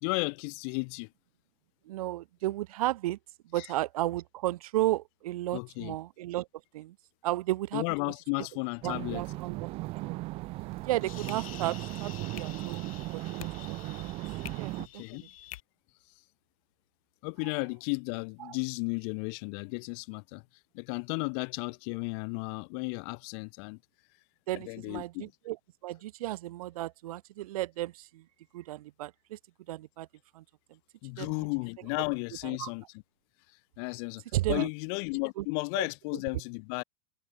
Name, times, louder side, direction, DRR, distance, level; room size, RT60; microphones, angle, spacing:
voice 1, 0.0-1.1 3.6-3.7 5.5-5.9 7.7-9.2 14.8-15.2 17.2-20.4 20.7-23.8 24.7-25.3 31.0-32.8 33.8-34.2 34.5-36.8, left 40 dB or more, 45° left, 1.0 m, -34 dB
voice 2, 1.9-3.2 3.4-6.5 6.7-7.0 7.2-7.8 8.4-8.5 8.8-10.2 10.8-14.1 14.5-15.3 18.4-18.6 24.5-25.6 25.8-28.2 28.5-29.4 29.7-30.1 30.3-30.4 31.2-31.3 32.4-32.7 34.3-34.7 35.4-35.5 35.7-35.9, right 16 dB, 80° right, 0.5 m, -34 dB
sound 1, 8.8-14.9, right 20 dB, 30° right, 0.6 m, -37 dB
sound 2, 10.6-15.6, left 15 dB, 70° left, 1.5 m, -48 dB
supercardioid pair, 150°, 18 cm